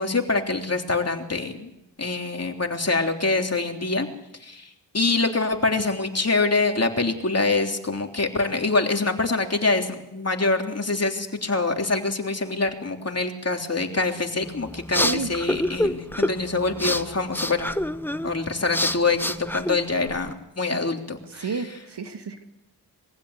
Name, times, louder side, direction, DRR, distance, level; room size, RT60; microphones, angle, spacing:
voice 1, 0.0-1.7 2.0-4.1 4.4-4.7 4.9-17.7 18.2-21.4, left 3 dB, 35° left, 3 dB, 3.3 m, -25 dB
sound 1, 14.4-20.3, left 1 dB, 5° left, 1.1 m, -28 dB
voice 2, 15.0-15.3 21.3-22.4, right 4 dB, 65° right, 6 dB, 2.1 m, -31 dB
23.0 x 15.5 x 8.2 m, 0.89 s
cardioid pair, 50°, 44 cm